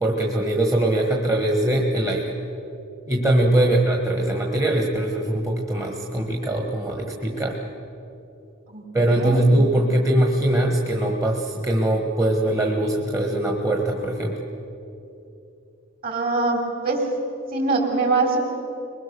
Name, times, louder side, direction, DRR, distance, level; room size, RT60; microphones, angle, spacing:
voice 1, 0.0-2.3 3.1-7.6 8.9-14.3, right 1 dB, 15° right, 0 dB, 1.5 m, -22 dB
voice 2, 8.7-9.8 16.0-17.1 17.5-18.4, right 3 dB, 45° right, 2 dB, 3.7 m, -24 dB
23.0 x 21.0 x 6.9 m, 2.8 s
head